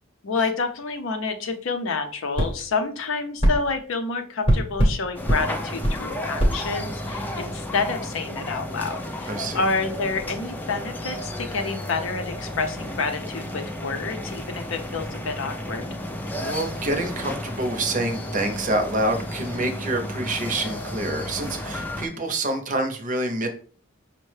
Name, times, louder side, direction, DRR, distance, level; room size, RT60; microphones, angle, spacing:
voice 1, 0.2-15.9, left 4 dB, 70° left, 6 dB, 0.6 m, -28 dB
sound 1, 2.3-2.5 3.4-3.6 4.4-5.0 5.3-5.4 5.8-6.0 6.4-6.6, equal, 25° left, 0.8 m, -19 dB
sound 2, 5.1-22.1, left 1 dB, 10° left, 0.3 m, -33 dB
voice 2, 9.3-9.6 16.4-23.5, right 1 dB, 40° right, 5 dB, 0.6 m, -27 dB
5.4 x 2.1 x 3.2 m, 0.43 s
head